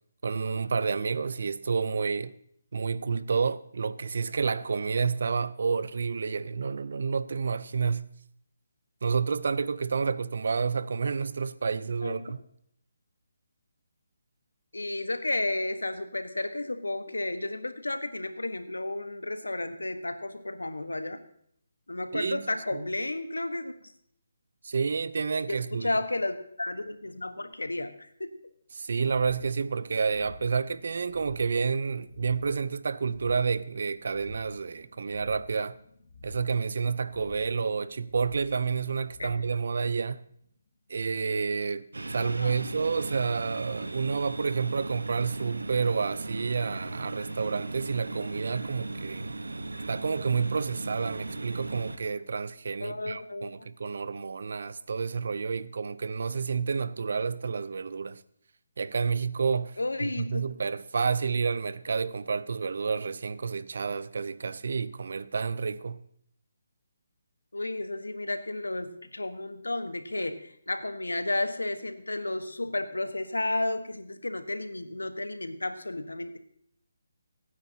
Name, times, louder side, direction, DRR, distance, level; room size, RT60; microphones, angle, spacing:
voice 1, 0.2-2.3 2.7-8.1 9.0-12.4 22.1-22.4 22.7-22.8 24.6-25.9 28.7-35.8 36.2-40.2 40.9-49.3 49.9-58.2 58.8-66.0, right 5 dB, 60° right, 0.7 m, -29 dB
voice 2, 14.7-21.2 21.9-23.7 25.4-28.3 39.2-39.3 42.2-42.6 52.8-53.7 59.8-60.4 67.5-76.4, left 2 dB, 85° left, 1.3 m, -32 dB
sound 1, 28.9-40.7, left 2 dB, 50° left, 2.0 m, -52 dB
sound 2, 41.9-52.0, right 2 dB, 80° right, 1.2 m, -37 dB
25.0 x 9.6 x 2.9 m
figure-of-eight pair, 150°, 0 cm